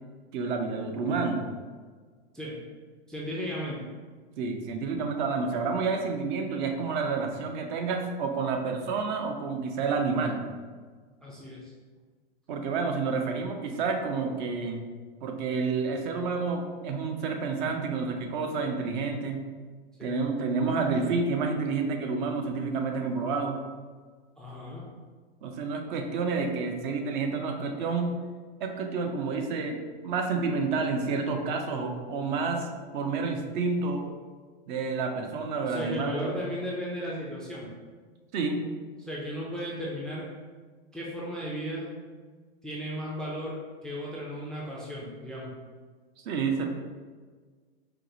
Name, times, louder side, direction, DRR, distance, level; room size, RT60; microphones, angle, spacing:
voice 1, 0.3-1.4 4.4-10.4 12.5-14.8 15.2-19.4 20.0-23.6 25.4-28.1 28.6-32.7 32.9-34.1 34.7-36.3 38.3-38.6 46.2-46.7, right 4 dB, 50° right, 4 dB, 0.5 m, -29 dB
voice 2, 3.1-3.8 11.2-11.7 20.0-20.2 24.4-24.8 35.6-37.7 39.0-40.3 40.9-41.9 42.6-45.5, equal, ahead, -5 dB, 0.3 m, -35 dB
4.5 x 2.0 x 2.6 m, 1.5 s
hypercardioid pair, 110°, 31 cm